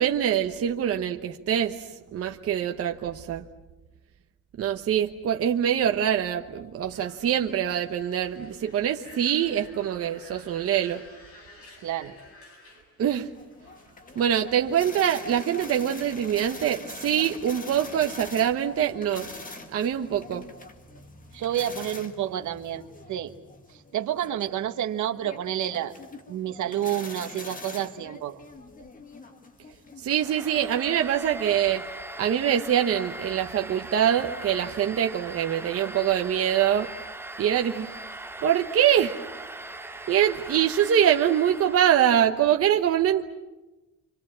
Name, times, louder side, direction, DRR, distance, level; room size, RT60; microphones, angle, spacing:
voice 1, 0.0-1.8 2.1-3.4 4.6-11.0 13.0-13.3 14.2-19.3 19.7-20.5 30.0-31.9 32.2-36.9 37.4-38.0 38.4-39.2 40.1-43.3, right 10 dB, 50° right, 4 dB, 1.1 m, -24 dB
sound 1, 6.9-15.6, left 1 dB, 50° left, 6.9 m, -52 dB
voice 2, 11.8-12.2 21.3-23.3 23.9-25.9 26.3-28.4, right 11 dB, 70° right, 9 dB, 1.4 m, -29 dB
sound 2, 13.3-31.2, left 3 dB, 25° left, 2.2 m, -44 dB
Domestic sounds home sounds, 30.1-42.2, right 2 dB, 10° right, 0.9 m, -40 dB
29.0 x 26.0 x 7.5 m, 1.1 s
cardioid pair, 160°, 30 cm